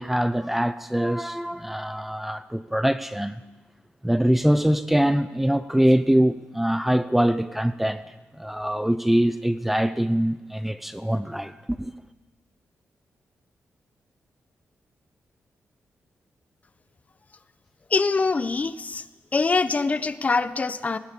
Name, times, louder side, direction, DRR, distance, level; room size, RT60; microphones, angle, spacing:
voice 1, 0.0-3.4 4.0-8.0 8.4-11.9, right 1 dB, 5° right, 0.6 m, -23 dB
voice 2, 17.9-19.0 19.3-21.0, left 4 dB, 30° left, 1.0 m, -24 dB
20.0 x 19.0 x 8.5 m
wide cardioid pair, 130°, 5 cm